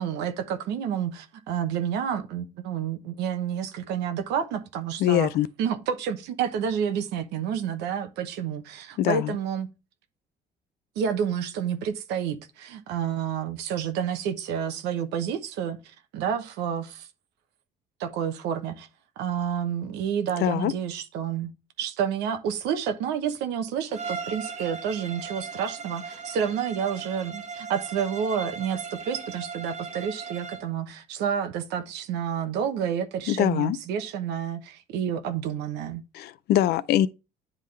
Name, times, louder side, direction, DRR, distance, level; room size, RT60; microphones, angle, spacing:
voice 1, 0.0-5.3 5.6-9.7 11.0-15.8 16.1-17.1 18.0-18.9 19.2-21.5 21.8-36.0, right 8 dB, 85° right, 1.0 m, -29 dB
voice 2, 5.0-5.5 9.0-9.4 20.4-20.7 33.3-33.8 36.1-37.1, left 12 dB, 70° left, 0.5 m, -23 dB
Bowed string instrument, 23.9-30.7, right 5 dB, 45° right, 1.2 m, -38 dB
9.9 x 3.7 x 3.2 m
cardioid pair, 110°, 17 cm